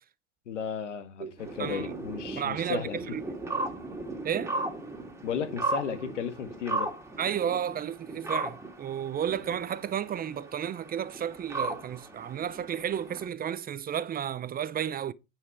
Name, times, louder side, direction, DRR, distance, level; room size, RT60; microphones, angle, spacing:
voice 1, 0.5-3.0 5.2-6.9, left 7 dB, 90° left, 1.6 m, -34 dB
sound 1, 1.4-13.3, right 2 dB, 10° right, 2.4 m, -36 dB
voice 2, 1.6-1.9 2.3-3.2 4.2-4.6 7.2-15.1, right 9 dB, 25° right, 0.6 m, -32 dB
9.6 x 5.6 x 4.7 m
hypercardioid pair, 95°, 35 cm